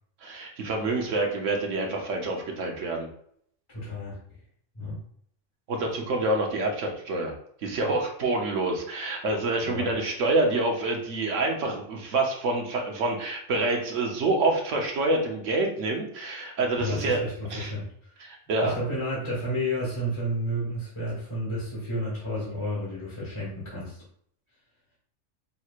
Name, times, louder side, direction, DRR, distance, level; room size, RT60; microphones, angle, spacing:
voice 1, 0.2-3.1 5.7-7.3 7.6-17.2 17.5-17.7 18.2-18.7, right 2 dB, 70° right, 2 dB, 1.2 m, -27 dB
voice 2, 3.7-4.2 4.7-5.0 9.6-9.9 16.8-18.1 18.6-24.0, equal, 25° left, -8 dB, 1.7 m, -31 dB
5.4 x 3.1 x 2.4 m, 0.64 s
omnidirectional pair, 1.3 m